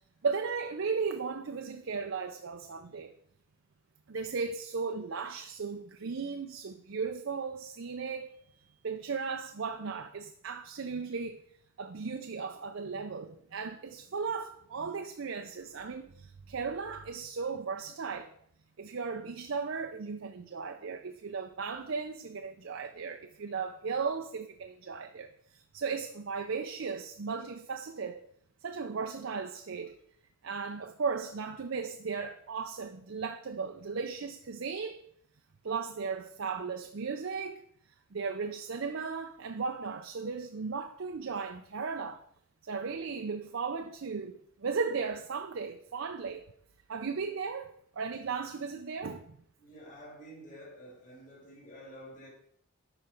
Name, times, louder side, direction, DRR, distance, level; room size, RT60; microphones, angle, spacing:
voice 1, 0.2-3.1 4.1-8.3 8.8-11.4 11.8-18.3 18.8-28.2 28.6-29.9 30.4-35.0 35.6-37.6 38.1-42.2 42.6-46.4 46.9-49.4, right 5 dB, 60° right, 0.5 m, -36 dB
voice 2, 49.6-52.3, equal, 35° left, 3.0 m, -49 dB
12.5 x 5.1 x 4.4 m
head